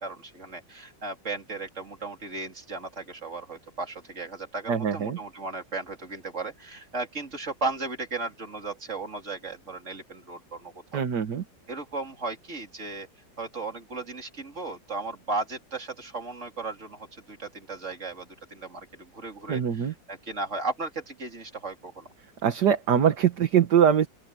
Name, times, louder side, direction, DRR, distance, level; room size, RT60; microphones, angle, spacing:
voice 1, 0.0-11.0 11.7-13.1 13.4-22.1, right 3 dB, 40° right, 3.9 m, -36 dB
voice 2, 4.7-5.2 10.9-11.4 19.5-19.9 22.4-24.1, right 8 dB, 65° right, 1.9 m, -22 dB
open air
omnidirectional pair, 2.0 m